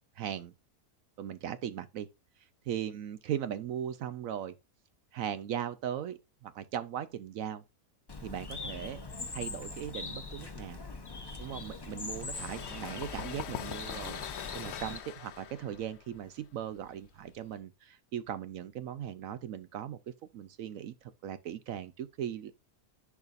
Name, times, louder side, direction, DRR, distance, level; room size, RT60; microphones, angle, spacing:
voice 1, 0.2-0.5 1.2-2.1 2.4-4.6 5.1-7.6 8.2-9.0 9.3-10.8 11.4-22.5, right 10 dB, 70° right, 0.9 m, -38 dB
Bird, 8.1-15.0, left 3 dB, 20° left, 0.8 m, -42 dB
sound 1, 12.1-17.6, left 11 dB, 65° left, 0.6 m, -43 dB
10.5 x 4.8 x 2.5 m
omnidirectional pair, 1.6 m